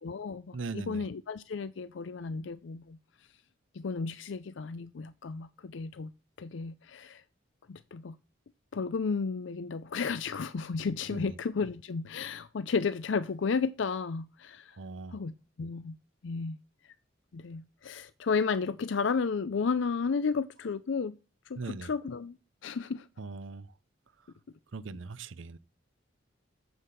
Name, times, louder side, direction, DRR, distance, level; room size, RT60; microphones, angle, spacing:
voice 1, 0.0-3.0 3.7-6.1 6.4-7.2 7.7-8.2 8.7-14.8 15.1-16.0 16.2-16.6 17.3-21.2 21.5-22.4 22.6-23.1, left 5 dB, 70° left, 0.5 m, -33 dB
voice 2, 0.5-1.0 11.1-11.3 14.8-15.2 21.6-21.9 23.2-23.7 24.7-25.6, right 3 dB, 75° right, 0.6 m, -39 dB
7.8 x 7.5 x 6.7 m
head